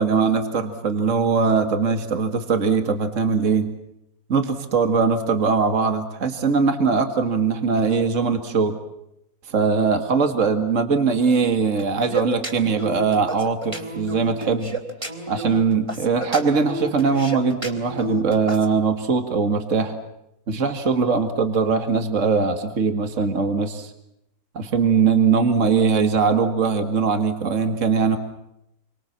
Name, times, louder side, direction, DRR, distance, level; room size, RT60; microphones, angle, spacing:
voice 1, 0.0-3.7 4.3-8.8 9.5-14.8 15.3-19.9 20.5-23.9 24.5-28.2, right 5 dB, 55° right, 7 dB, 2.3 m, -21 dB
sound 1, 11.8-18.7, right 1 dB, 20° right, 3.5 m, -31 dB
29.0 x 24.5 x 7.4 m, 0.82 s
omnidirectional pair, 1.6 m